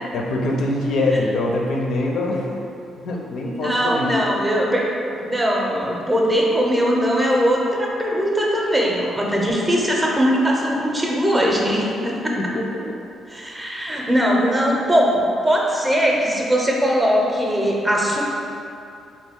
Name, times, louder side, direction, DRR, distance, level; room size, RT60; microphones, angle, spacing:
voice 1, 0.1-2.5 3.0-4.1 12.4-13.0, left 2 dB, 75° left, -1 dB, 0.4 m, -23 dB
voice 2, 3.4-4.9 5.2-12.4 13.3-18.2, equal, 15° right, -2 dB, 0.6 m, -20 dB
3.4 x 2.4 x 3.5 m, 2.7 s
cardioid pair, 90°, 0 cm